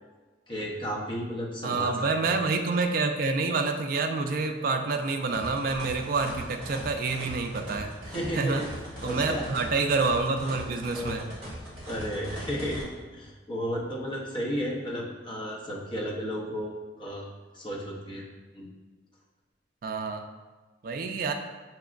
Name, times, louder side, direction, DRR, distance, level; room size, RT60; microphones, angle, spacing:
voice 1, 0.5-1.9 2.2-2.3 8.0-8.7 9.0-9.5 11.0-11.3 11.9-17.3 17.5-18.3 18.5-18.7, equal, 25° left, -3 dB, 0.6 m, -33 dB
voice 2, 1.6-7.9 8.4-8.6 9.0-11.3 19.8-20.2 20.8-21.3, right 3 dB, 50° right, 5 dB, 0.3 m, -27 dB
sound 1, 5.3-12.8, equal, 25° right, 1.5 m, -40 dB
5.9 x 2.9 x 2.4 m, 1.3 s
head